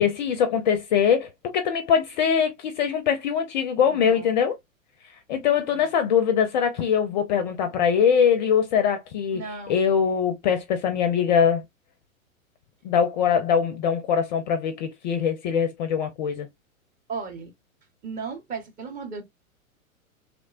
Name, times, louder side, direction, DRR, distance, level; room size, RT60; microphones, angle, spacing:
voice 1, 0.0-4.6 5.3-9.4 9.7-11.6 12.8-16.5, left 7 dB, 35° left, 0.4 m, -22 dB
voice 2, 3.8-4.3 5.7-5.8 9.3-9.8 17.1-17.5 18.0-19.2, right 5 dB, 20° right, 0.7 m, -35 dB
3.1 x 2.0 x 2.3 m
figure-of-eight pair, 105°, 41 cm